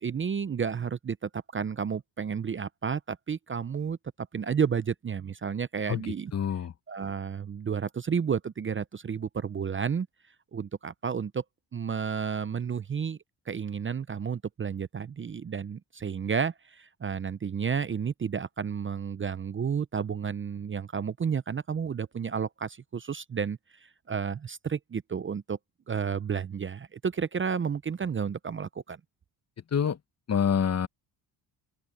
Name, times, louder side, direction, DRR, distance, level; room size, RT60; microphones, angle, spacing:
voice 1, 0.0-4.0 4.3-6.3 6.9-10.1 10.5-11.4 11.7-13.2 13.5-25.6 25.9-29.0, right 6 dB, 30° right, 0.6 m, -31 dB
voice 2, 5.9-6.7 29.7-30.0 30.3-30.9, left 7 dB, 35° left, 1.0 m, -27 dB
open air
cardioid pair, 85°, 44 cm